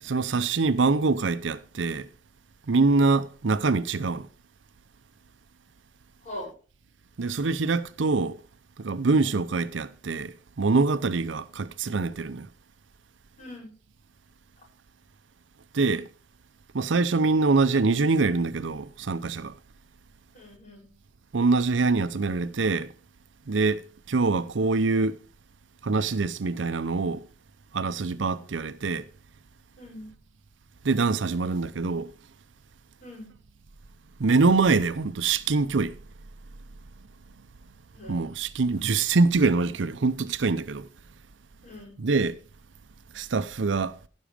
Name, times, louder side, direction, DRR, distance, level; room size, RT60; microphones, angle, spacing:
voice 1, 0.0-2.1 2.7-4.3 7.2-8.4 8.8-12.5 15.7-16.1 16.7-19.5 21.3-22.9 23.5-25.2 25.8-27.3 27.7-29.1 30.8-32.1 34.2-36.0 38.1-40.9 42.0-42.4 43.1-44.0, right 3 dB, 70° right, 0.6 m, -24 dB
voice 2, 13.4-13.7 20.3-20.9 29.8-30.1 33.0-33.3 37.9-38.2 41.6-42.0, left 1 dB, 40° left, 5.6 m, -41 dB
15.5 x 6.3 x 4.9 m
head